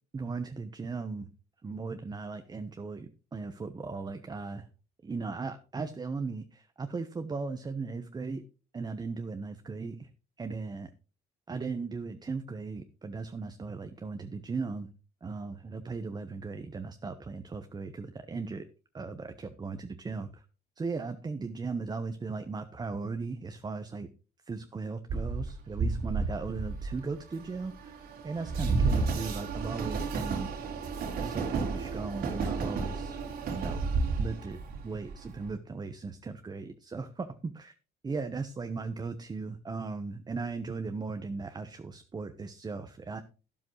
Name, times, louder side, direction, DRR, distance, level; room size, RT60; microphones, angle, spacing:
voice 1, 0.1-1.3 1.6-4.7 5.0-8.4 8.7-10.1 10.4-10.9 11.5-14.9 15.2-18.6 18.9-20.4 20.8-24.1 24.4-30.5 31.2-33.2 33.5-33.8 34.2-34.6 34.8-37.7 38.0-43.2, right 4 dB, 25° right, 8 dB, 1.0 m, -37 dB
Train, 25.1-35.5, right 4 dB, 70° right, 3.6 m, -32 dB
12.5 x 11.0 x 3.1 m, 0.34 s
cardioid pair, 110°, 17 cm